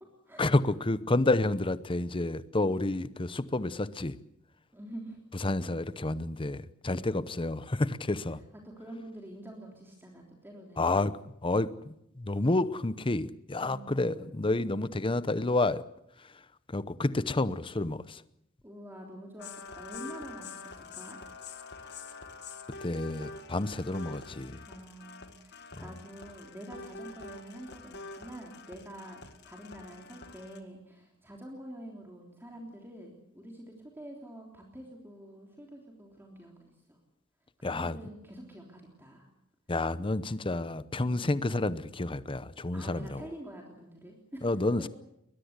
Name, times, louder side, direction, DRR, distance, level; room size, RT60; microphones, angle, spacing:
voice 1, 0.4-4.2 5.4-8.4 10.8-11.1 11.4-15.8 16.7-18.2 22.8-24.6 25.7-25.8 37.6-38.0 39.7-43.3 44.4-44.9, left 2 dB, 25° left, 15 dB, 0.8 m, -29 dB
voice 2, 4.7-5.7 6.9-7.4 8.6-11.0 13.6-14.5 18.6-19.5 19.7-21.2 24.7-37.0 37.6-39.3 41.1-41.4 42.7-44.5 44.8-44.9, right 1 dB, 10° right, 0 dB, 3.4 m, -47 dB
sound 1, 19.4-30.6, left 4 dB, 55° left, 2.0 m, -46 dB
22.0 x 21.0 x 8.2 m, 0.80 s
head